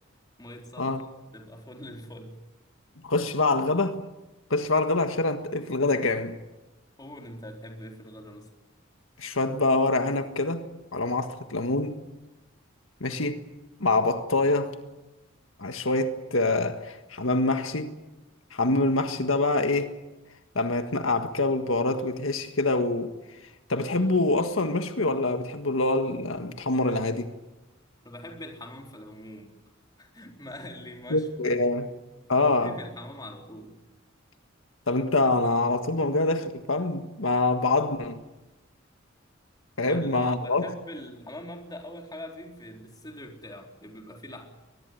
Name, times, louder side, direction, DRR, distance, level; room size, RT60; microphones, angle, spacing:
voice 1, 0.4-1.1 1.3-2.4 7.0-8.5 28.0-29.5 30.0-31.6 32.4-33.8 39.8-44.5, left 1 dB, 20° left, 4.0 m, -43 dB
voice 2, 3.0-4.0 4.5-6.4 9.2-10.6 10.9-12.0 13.0-13.4 13.8-14.7 15.6-17.9 18.5-19.9 20.5-23.1 23.7-27.3 31.1-31.9 32.3-32.7 34.9-38.2 39.8-40.6, left 2 dB, 80° left, 1.7 m, -25 dB
23.0 x 20.5 x 9.5 m
head